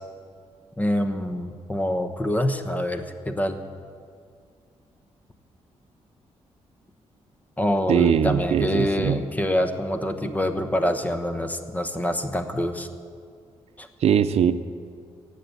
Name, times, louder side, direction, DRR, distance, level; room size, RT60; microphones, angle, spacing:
voice 1, 0.8-3.6 7.6-12.9 13.8-13.9, left 1 dB, 15° left, 8 dB, 1.1 m, -25 dB
voice 2, 7.9-9.2 14.0-14.5, right 8 dB, 70° right, 12 dB, 0.7 m, -21 dB
16.0 x 8.4 x 8.0 m, 2.2 s
cardioid pair, 100°, 11 cm